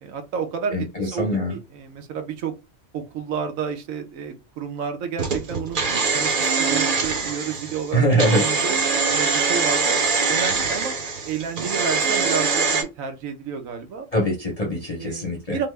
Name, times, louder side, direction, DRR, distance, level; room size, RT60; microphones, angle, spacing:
voice 1, 0.0-2.5 2.9-5.8 6.1-8.0 8.3-8.8 9.1-10.0 10.3-10.9 11.2-14.1 15.0-15.7, right 7 dB, 75° right, 1.1 m, -31 dB
voice 2, 0.7-1.6 7.9-8.4 14.1-15.6, right 1 dB, 35° left, 0.6 m, -22 dB
sound 1, 5.2-12.8, right 4 dB, 50° right, 0.7 m, -23 dB
3.3 x 2.0 x 3.2 m
omnidirectional pair, 1.4 m